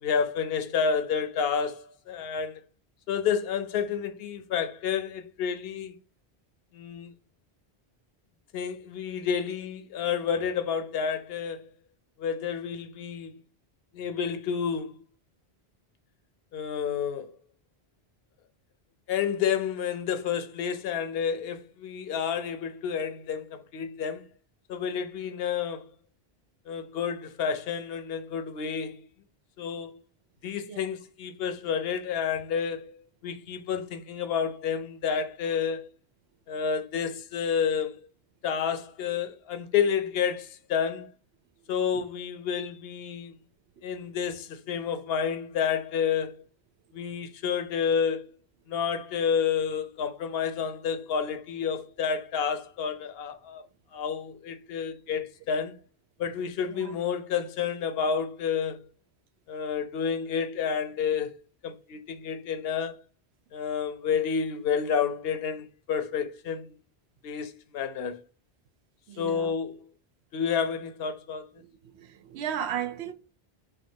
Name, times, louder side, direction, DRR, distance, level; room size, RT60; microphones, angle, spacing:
voice 1, 0.0-2.6 3.1-5.9 6.7-7.1 8.5-11.7 12.2-13.4 13.9-14.9 16.5-17.3 19.1-24.2 24.7-25.9 26.7-29.0 29.6-30.0 30.4-35.9 36.5-38.1 38.4-41.1 41.7-43.4 43.8-46.4 46.9-48.2 48.7-53.7 53.9-55.8 56.2-58.8 59.5-61.3 61.6-63.0 63.5-66.7 67.2-68.2 69.2-69.8 70.3-71.5, left 7 dB, 70° left, 0.8 m, -30 dB
voice 2, 69.1-69.5 71.6-71.7 71.9-73.1, right 9 dB, 85° right, 0.8 m, -35 dB
5.7 x 2.5 x 2.7 m
omnidirectional pair, 1.1 m